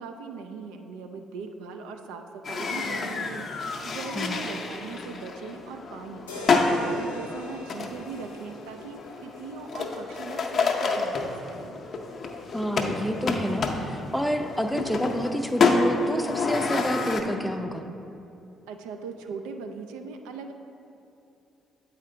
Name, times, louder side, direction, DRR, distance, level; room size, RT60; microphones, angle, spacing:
voice 1, 0.0-6.3 6.7-11.8 18.7-20.5, right 4 dB, 70° right, 5 dB, 0.3 m, -39 dB
sound 1, 2.4-17.2, left 4 dB, 50° left, 0.6 m, -29 dB
sound 2, 6.3-10.3, left 2 dB, 85° left, 0.6 m, -41 dB
voice 2, 12.5-17.8, equal, 5° left, 6 dB, 0.5 m, -29 dB
8.0 x 4.3 x 3.8 m, 2.7 s
figure-of-eight pair, 45°, 0 cm